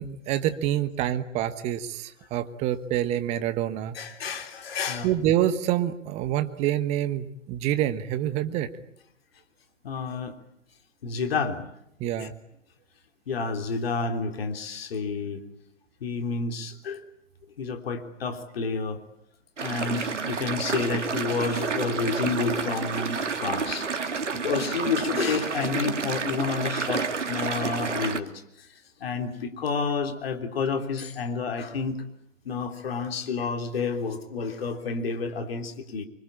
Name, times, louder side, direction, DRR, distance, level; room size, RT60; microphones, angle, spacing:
voice 1, 0.0-4.0 5.0-8.7 12.0-12.3, right 12 dB, 15° right, 11 dB, 1.3 m, -27 dB
voice 2, 3.9-5.1 9.8-10.4 11.0-11.6 12.2-12.3 13.3-15.4 16.0-17.0 17.6-19.0 19.6-23.9 24.3-28.3 28.6-32.0 32.5-36.1, left 5 dB, 50° left, 6 dB, 3.5 m, -30 dB
sound 1, 19.6-28.2, right 5 dB, 70° right, 2.5 m, -30 dB
27.0 x 25.0 x 8.8 m, 0.79 s
figure-of-eight pair, 130°, 38 cm